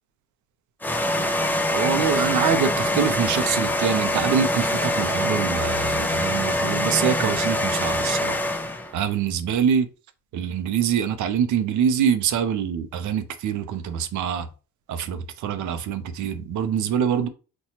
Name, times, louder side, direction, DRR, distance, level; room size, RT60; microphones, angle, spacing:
sound 1, 0.8-8.9, left 1 dB, 5° left, 0.4 m, -24 dB
voice 1, 1.7-8.4 8.9-9.9 10.3-14.5 14.9-17.3, right 8 dB, 75° right, 0.6 m, -24 dB
4.2 x 2.3 x 2.9 m
cardioid pair, 90°, 30 cm